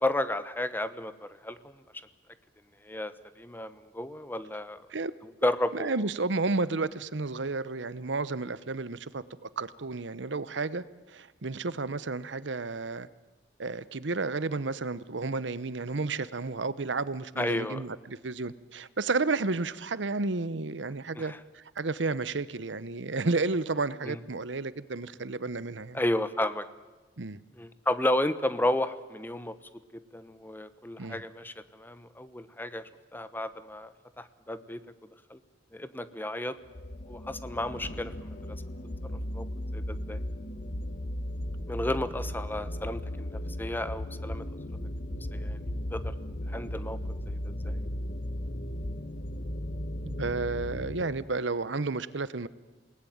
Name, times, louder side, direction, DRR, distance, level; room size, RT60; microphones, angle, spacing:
voice 1, 0.0-1.6 2.8-4.8 5.4-6.0 17.4-17.8 21.1-21.4 24.1-24.2 25.9-26.6 27.6-29.5 29.9-32.8 33.1-33.9 34.2-34.8 35.3-35.4 35.7-36.5 37.1-38.1 39.3-39.5 39.7-40.2 41.7-44.4 45.3-45.6 45.9-46.1 46.5-47.0 47.3-47.8, left 1 dB, 10° left, 12 dB, 1.1 m, -32 dB
voice 2, 5.4-13.1 13.6-26.0 27.2-27.4 31.0-31.2 50.0-52.5, right 3 dB, 85° right, 17 dB, 0.9 m, -32 dB
sound 1, 36.7-51.1, left 1 dB, 45° left, 1.3 m, -36 dB
28.5 x 19.0 x 9.4 m, 1.2 s
head